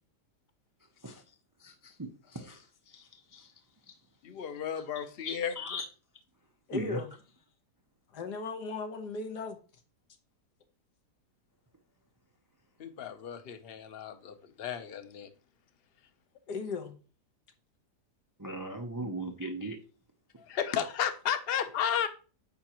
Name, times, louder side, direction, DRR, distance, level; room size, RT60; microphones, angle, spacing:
voice 1, 4.2-5.8 12.8-15.3 20.4-22.1, left 8 dB, 45° left, 0.8 m, -34 dB
voice 2, 5.2-5.8 6.7-7.0 18.4-19.8, right 1 dB, 30° right, 0.3 m, -37 dB
voice 3, 6.7-7.1 8.1-9.6 16.5-16.9 19.0-19.1, left 4 dB, 80° left, 1.7 m, -37 dB
9.3 x 5.8 x 3.0 m
omnidirectional pair, 1.8 m